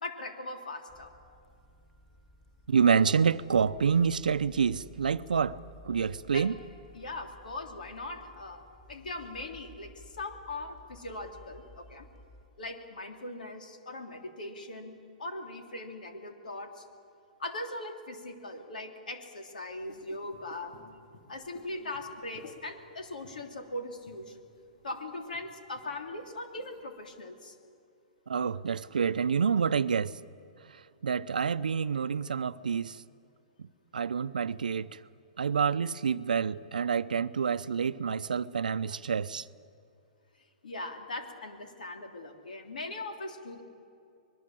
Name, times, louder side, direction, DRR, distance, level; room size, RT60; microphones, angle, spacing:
voice 1, 0.0-1.1 6.3-6.5 6.9-8.6 8.9-12.1 12.6-16.9 17.4-20.7 21.3-24.4 24.8-27.5 38.9-39.0 40.6-43.6, left 2 dB, 80° left, 3.3 m, -40 dB
sound 1, 0.9-12.5, left 1 dB, 10° left, 1.6 m, -55 dB
voice 2, 2.7-5.6 5.8-6.5 28.3-30.2 31.0-33.0 33.6-33.7 33.9-35.0 35.4-39.5, right 6 dB, 85° right, 0.7 m, -27 dB
sound 2, 19.7-27.2, left 2 dB, 60° left, 3.3 m, -56 dB
25.0 x 21.0 x 7.6 m
hypercardioid pair, 125°, 4 cm